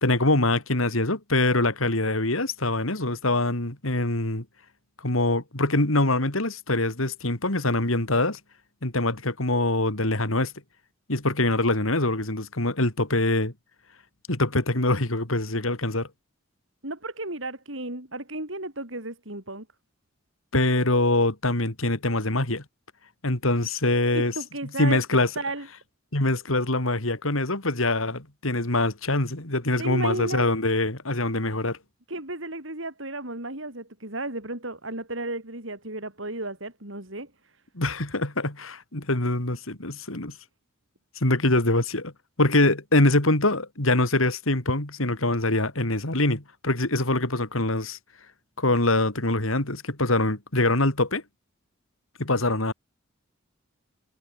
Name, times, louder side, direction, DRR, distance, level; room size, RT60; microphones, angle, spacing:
voice 1, 0.0-4.5 5.0-8.4 8.8-10.5 11.1-13.5 14.3-16.1 20.5-22.6 23.2-24.3 24.8-25.3 26.1-31.8 37.8-40.4 41.2-42.1 42.4-48.0 48.6-51.2 52.2-52.7, left 2 dB, 85° left, 3.7 m, -24 dB
voice 2, 16.8-19.7 24.1-25.7 29.8-30.4 32.1-37.3, right 2 dB, 70° right, 7.8 m, -34 dB
head